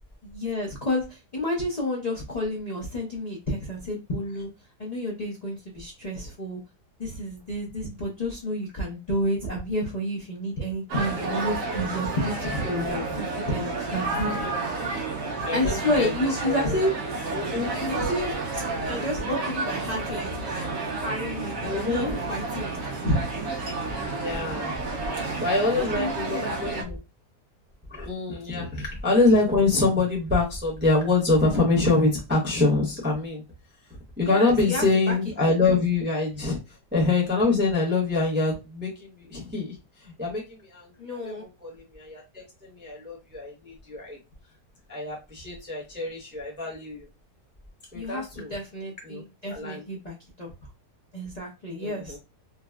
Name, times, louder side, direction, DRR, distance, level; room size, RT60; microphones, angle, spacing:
voice 1, 0.2-4.5 4.8-6.6 7.0-14.5 15.5-16.9 17.8-20.7 21.0-22.8 23.0-23.2 25.7-26.8 34.2-35.2 41.0-41.4 47.9-50.5 51.1-52.2, left 1 dB, 75° left, -3 dB, 0.3 m, -30 dB
sound 1, 10.9-26.8, right 3 dB, 80° right, 1.5 m, -31 dB
voice 2, 12.7-13.1 15.4-16.8 17.3-17.7 21.6-22.2 24.1-24.7 25.4-27.0 27.9-33.4 34.2-36.6 36.9-39.8 40.0-44.2 44.9-47.1 47.9-48.5 49.0-49.2 49.5-49.8 51.8-52.2, left 3 dB, 10° right, -4 dB, 0.8 m, -25 dB
3.8 x 2.0 x 2.3 m, 0.27 s
omnidirectional pair, 1.8 m